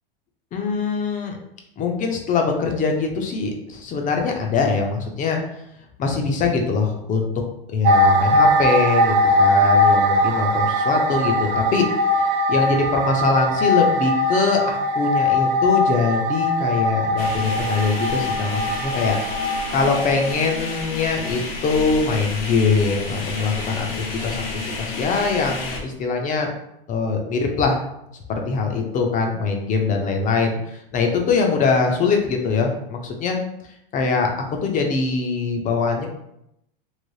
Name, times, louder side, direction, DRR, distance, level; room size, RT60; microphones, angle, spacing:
voice 1, 0.5-1.4 1.8-5.4 6.0-7.3 7.7-11.9 12.5-19.2 19.4-26.5 26.9-27.8 28.3-33.4 33.9-36.1, left 4 dB, 25° left, 2 dB, 0.6 m, -22 dB
sound 1, 7.8-20.3 20.6-20.8, left 1 dB, 50° right, 0.5 m, -20 dB
sound 2, 17.2-25.8, left 3 dB, 85° left, 0.8 m, -31 dB
3.3 x 2.9 x 2.7 m, 0.81 s
hypercardioid pair, 120°, 29 cm